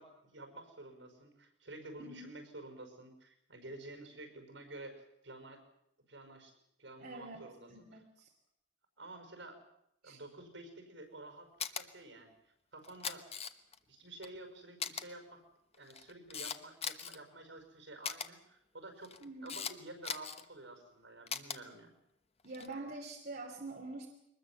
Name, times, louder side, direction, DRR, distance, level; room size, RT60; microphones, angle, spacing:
voice 1, 0.0-5.6 6.1-8.0 9.0-9.6 10.0-11.5 11.8-12.3 12.7-13.3 13.9-15.4 15.7-19.2 19.4-21.9, right 2 dB, 80° right, 6 dB, 5.4 m, -50 dB
voice 2, 2.0-2.3 7.0-7.4 7.7-8.3 10.0-10.2 19.2-19.6 22.4-24.1, right 2 dB, 55° right, 1 dB, 2.9 m, -45 dB
Camera, 11.6-11.8 12.8-13.8 14.2-14.3 14.8-15.0 15.7-17.2 18.0-18.3 19.0-19.7 20.0-20.4 21.3-21.6 22.4-22.7, left 7 dB, 35° left, 1.1 m, -39 dB
23.0 x 20.5 x 7.5 m, 0.78 s
head